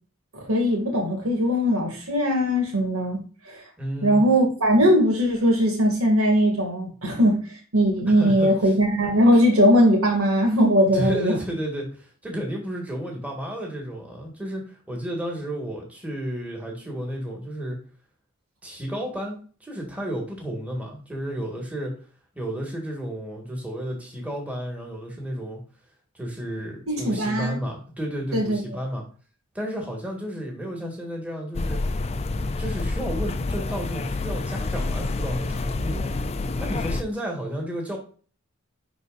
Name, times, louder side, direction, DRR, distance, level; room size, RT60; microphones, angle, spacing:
voice 1, 0.3-3.2 3.5-3.6 4.0-11.4 26.9-27.6 28.3-28.6, equal, 80° right, 1 dB, 2.4 m, -20 dB
voice 2, 3.8-4.2 8.1-8.5 10.9-17.8 18.6-21.9 22.4-25.6 26.1-29.0 29.5-31.8 32.5-36.1 36.6-38.0, equal, 5° right, -1 dB, 1.9 m, -32 dB
sound 1, 31.5-37.0, left 2 dB, 30° left, 0.4 m, -28 dB
11.0 x 4.2 x 2.6 m, 0.40 s
head